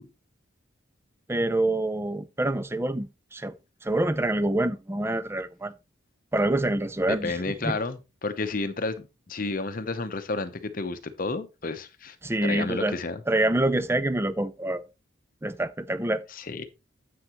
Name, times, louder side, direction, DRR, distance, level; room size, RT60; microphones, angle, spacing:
voice 1, 1.3-3.6 3.8-5.7 6.3-7.8 12.2-13.0 13.3-14.8 15.4-16.2, right 1 dB, 10° right, 0.4 m, -26 dB
voice 2, 7.1-12.2 12.4-13.2 16.3-16.7, left 3 dB, 40° left, 0.7 m, -31 dB
9.8 x 7.7 x 3.0 m
head